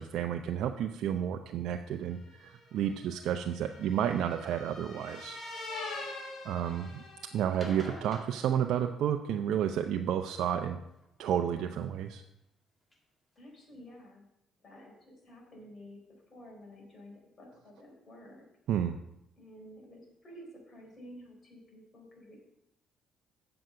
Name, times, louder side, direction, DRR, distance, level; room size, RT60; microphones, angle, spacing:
voice 1, 0.0-5.4 6.4-7.0 7.3-10.8 11.2-12.2 18.7-19.0, right 9 dB, 75° right, 5 dB, 0.5 m, -31 dB
sound 1, 2.2-7.7, left 2 dB, 60° left, 4.3 m, -44 dB
sound 2, 4.3-4.5 5.2-5.9 7.4-9.4 11.0-11.5 12.2-12.3 12.9-13.0 13.4-13.5 13.6-13.7, left 1 dB, 15° left, 2.1 m, -50 dB
voice 2, 13.4-14.3 14.6-16.0 16.3-18.4 19.4-22.4, equal, 35° left, 0 dB, 4.2 m, -51 dB
7.8 x 7.7 x 5.5 m, 0.84 s
cardioid pair, 95°, 0 cm